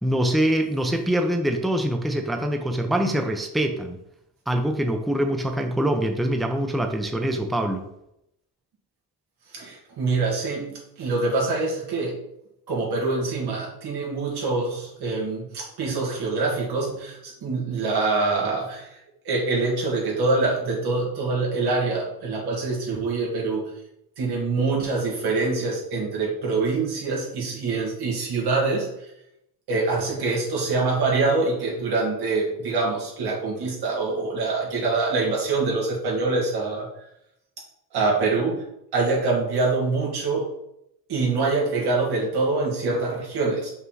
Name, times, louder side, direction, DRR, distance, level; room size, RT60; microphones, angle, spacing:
voice 1, 0.0-4.0 4.5-7.9, right 1 dB, ahead, 4 dB, 0.6 m, -24 dB
voice 2, 9.5-12.2 12.7-19.0 19.3-23.7 24.2-28.9 29.7-36.9 37.9-38.6 38.9-40.5 41.1-43.7, right 3 dB, 90° right, -2 dB, 2.2 m, -25 dB
5.6 x 4.5 x 4.0 m, 0.80 s
cardioid pair, 125°, 38 cm